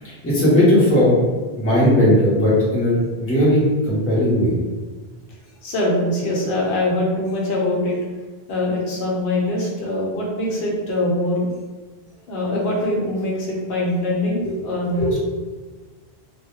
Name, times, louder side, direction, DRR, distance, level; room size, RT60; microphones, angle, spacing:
voice 1, 0.0-1.2 1.6-4.6, left 1 dB, 15° left, -7 dB, 0.6 m, -17 dB
voice 2, 5.6-8.0 8.5-11.5 12.3-15.2, left 1 dB, 80° left, -3 dB, 0.9 m, -23 dB
2.1 x 2.1 x 2.9 m, 1.3 s
omnidirectional pair, 1.0 m